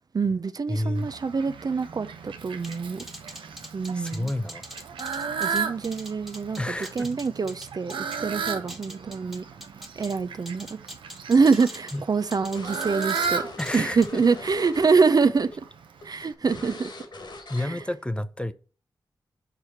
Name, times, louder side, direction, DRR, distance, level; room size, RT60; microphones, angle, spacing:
voice 1, 0.1-3.0 3.7-4.3 5.4-6.6 7.0-9.4 10.0-10.8 11.3-13.4 13.7-15.6 16.0-16.9 17.6-17.8, right 4 dB, 50° right, 0.5 m, -25 dB
voice 2, 0.7-1.1 3.9-4.6 6.6-7.1 11.9-12.0 13.6-14.2 17.5-18.5, left 1 dB, 10° left, 0.6 m, -30 dB
Fowl, 0.9-16.3, right 6 dB, 85° right, 0.7 m, -35 dB
sound 1, 2.6-8.2 8.5-10.2 10.5-12.0 12.3-13.3 13.6-14.1, equal, 5° right, 1.4 m, -42 dB
sound 2, 11.4-15.1 15.3-15.6 16.0-16.1 16.5-17.9, left 2 dB, 65° left, 1.7 m, -42 dB
4.9 x 4.7 x 5.8 m
cardioid pair, 40°, 8 cm